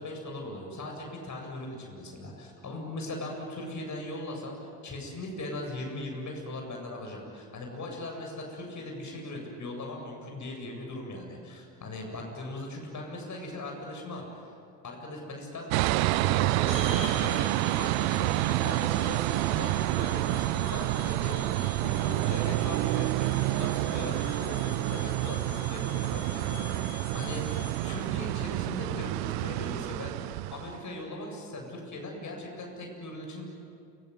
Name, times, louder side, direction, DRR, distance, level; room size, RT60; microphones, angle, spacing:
voice 1, 0.0-4.6 4.8-14.5 14.8-17.5 17.8-19.2 19.5-21.4 21.8-30.2 30.5-33.5, left 1 dB, 35° left, 1 dB, 7.8 m, -39 dB
sound 1, 15.7-30.8, right 20 dB, 60° right, 0.7 m, -28 dB
sound 2, 16.7-28.1, left 2 dB, 85° left, 4.5 m, -43 dB
29.0 x 20.0 x 9.6 m, 2.5 s
figure-of-eight pair, 55°, 49 cm